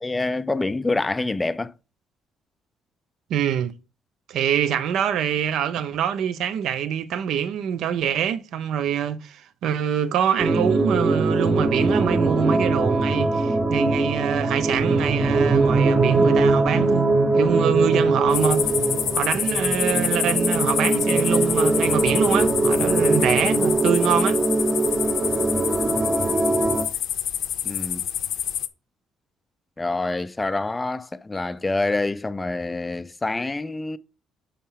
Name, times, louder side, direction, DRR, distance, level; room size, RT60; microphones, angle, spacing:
voice 1, 0.0-1.7 27.6-28.0 29.8-34.0, left 2 dB, 10° left, 0.4 m, -26 dB
voice 2, 3.3-3.7 4.3-17.1 17.3-18.7 19.1-24.4, right 9 dB, 65° right, 0.6 m, -25 dB
sound 1, 10.4-26.9, right 3 dB, 20° right, 0.8 m, -21 dB
sound 2, 18.3-28.7, left 11 dB, 65° left, 0.7 m, -27 dB
5.6 x 5.4 x 5.7 m
cardioid pair, 155°, 0 cm